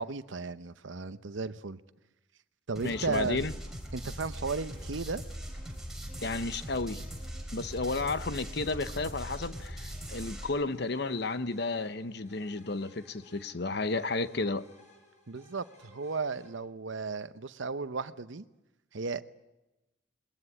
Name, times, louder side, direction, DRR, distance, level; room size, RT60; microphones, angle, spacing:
voice 1, 0.0-1.8 2.7-3.5 3.9-5.2 15.3-18.4 18.9-19.2, right 4 dB, 75° right, 0.8 m, -35 dB
voice 2, 2.8-3.5 6.2-7.0 7.5-14.7, left 3 dB, 55° left, 0.9 m, -32 dB
sound 1, 2.8-10.5, equal, ahead, 4.0 m, -41 dB
sound 2, 4.5-16.5, equal, 35° left, 7.3 m, -59 dB
21.5 x 19.0 x 9.7 m
head